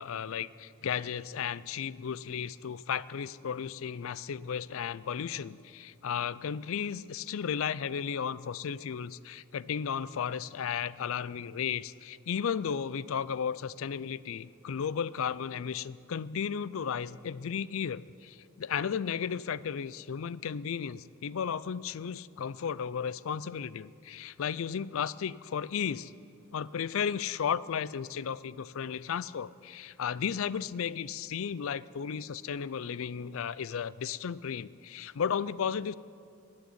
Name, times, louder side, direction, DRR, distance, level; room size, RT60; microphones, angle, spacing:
voice 1, 0.0-26.1 26.5-35.9, left 7 dB, 65° left, 18 dB, 0.4 m, -34 dB
19.5 x 6.6 x 9.8 m, 2.3 s
head